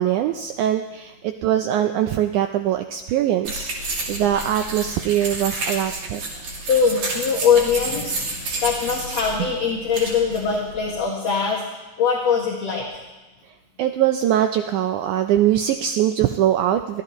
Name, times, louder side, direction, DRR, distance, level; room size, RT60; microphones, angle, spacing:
voice 1, 0.0-6.2 13.8-17.0, right 11 dB, 80° right, 7 dB, 1.8 m, -22 dB
sound 1, 3.4-11.0, right 2 dB, 50° right, 3.3 m, -30 dB
voice 2, 6.6-12.9, left 6 dB, 55° left, -2 dB, 2.5 m, -22 dB
23.5 x 15.5 x 3.0 m, 1.1 s
omnidirectional pair, 4.0 m